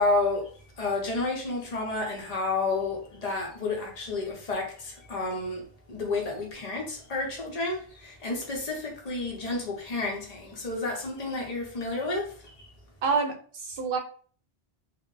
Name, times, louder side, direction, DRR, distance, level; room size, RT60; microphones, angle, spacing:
voice 1, 0.0-12.7, left 3 dB, 40° left, 0.7 m, -31 dB
voice 2, 13.0-14.0, right 5 dB, 65° right, 0.7 m, -27 dB
2.2 x 2.0 x 3.1 m
omnidirectional pair, 1.1 m